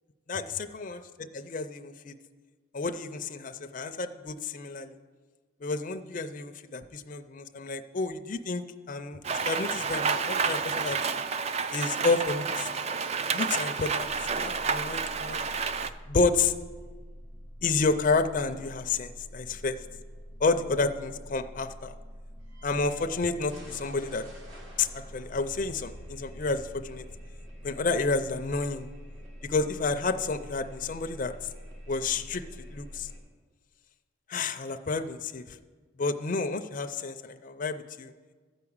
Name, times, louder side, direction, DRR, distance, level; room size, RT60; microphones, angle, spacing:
voice 1, 0.3-1.0 1.3-2.1 2.7-5.0 5.6-11.0 11.7-12.7 13.3-15.6 16.1-16.5 17.6-19.8 20.4-21.9 22.6-24.2 24.8-27.0 27.6-28.9 29.4-31.3 31.9-32.4 32.7-33.1 34.3-35.6 36.0-38.1, left 4 dB, 40° left, 7 dB, 0.4 m, -30 dB
Rain, 9.2-15.9, right 5 dB, 30° right, 0.3 m, -30 dB
sound 1, 14.0-33.2, equal, 65° right, 2.1 m, -46 dB
13.0 x 4.8 x 8.6 m, 1.4 s
head